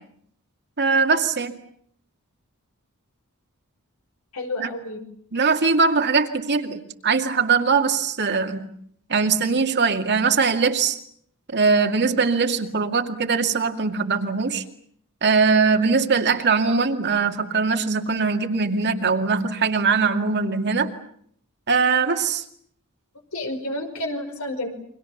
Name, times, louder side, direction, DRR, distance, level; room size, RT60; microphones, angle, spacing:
voice 1, 0.8-1.5 4.6-4.7 5.3-8.7 9.1-11.0 11.5-14.6 15.2-20.9 21.7-22.4, right 5 dB, 50° right, 5 dB, 2.3 m, -21 dB
voice 2, 4.3-5.0 23.3-24.7, left 1 dB, 75° left, 5 dB, 5.4 m, -30 dB
29.5 x 24.5 x 7.2 m, 0.67 s
head